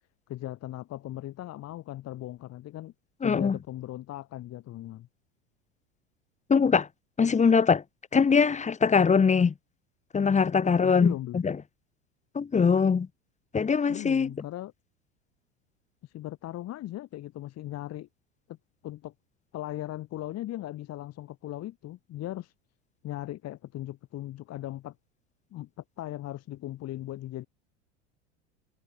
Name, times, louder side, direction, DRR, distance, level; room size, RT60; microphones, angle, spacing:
voice 1, 0.3-2.9 3.2-5.1 10.6-11.4 13.9-14.7 16.0-18.1 18.5-18.6 18.8-19.1 19.5-22.5 23.0-25.0 25.5-25.7 26.0-27.5, left 14 dB, 45° left, 3.5 m, -38 dB
voice 2, 3.2-3.6 6.5-6.9 7.2-7.8 8.1-9.5 10.1-11.6 12.3-13.1 13.5-14.3, left 5 dB, 20° left, 1.6 m, -22 dB
hypercardioid pair, 80°, 36 cm